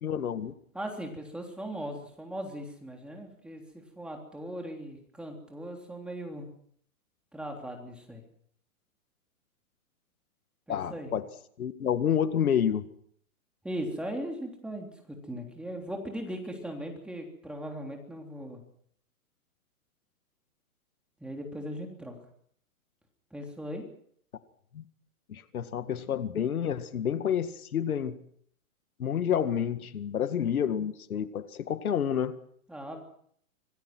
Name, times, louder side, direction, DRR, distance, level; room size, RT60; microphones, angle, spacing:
voice 1, 0.0-0.5 10.7-11.2 11.6-12.8 24.7-24.8 25.3-28.2 29.0-32.4, left 8 dB, 85° left, 11 dB, 2.0 m, -29 dB
voice 2, 0.7-6.5 7.3-8.2 10.7-11.1 13.6-18.6 21.2-22.2 23.3-23.8 32.7-33.0, equal, ahead, 2 dB, 3.4 m, -38 dB
26.0 x 20.0 x 6.1 m, 0.64 s
hypercardioid pair, 150°, 42 cm